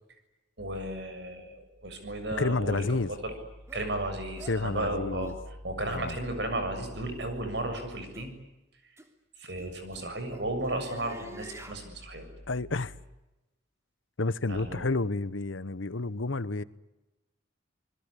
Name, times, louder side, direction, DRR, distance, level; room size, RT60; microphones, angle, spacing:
voice 1, 0.6-3.3 3.7-5.3 5.6-8.3 9.4-12.3 14.5-14.9, right 1 dB, 60° right, 7.0 m, -34 dB
sound 1, 2.1-2.2 2.8-3.0 3.7-3.9 4.4-4.6 5.2-5.4 6.0-6.2 7.1-7.4 8.1-8.3 9.0-9.1 9.6-11.8, right 1 dB, 15° right, 3.2 m, -49 dB
voice 2, 2.4-3.1 4.5-5.3 5.9-6.2 12.5-12.9 14.2-16.6, left 3 dB, 85° left, 1.1 m, -30 dB
27.5 x 21.0 x 10.0 m
head